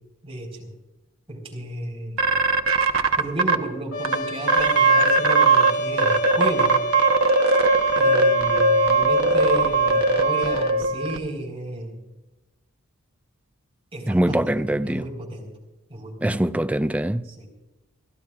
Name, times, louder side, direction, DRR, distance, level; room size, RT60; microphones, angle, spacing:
voice 1, 0.2-0.7 1.3-2.2 3.2-6.7 8.0-11.9 13.9-15.5 15.9-16.4 17.3-17.5, right 1 dB, 25° right, 4.5 m, -33 dB
sound 1, 2.2-3.6 4.0-4.1 4.5-5.7 6.0-11.2, right 3 dB, 65° right, 1.0 m, -19 dB
Trumpet, 3.9-10.8, equal, 85° left, 2.3 m, -29 dB
voice 2, 14.1-15.1 16.2-17.4, right 1 dB, 5° right, 0.4 m, -23 dB
29.0 x 12.5 x 2.4 m
head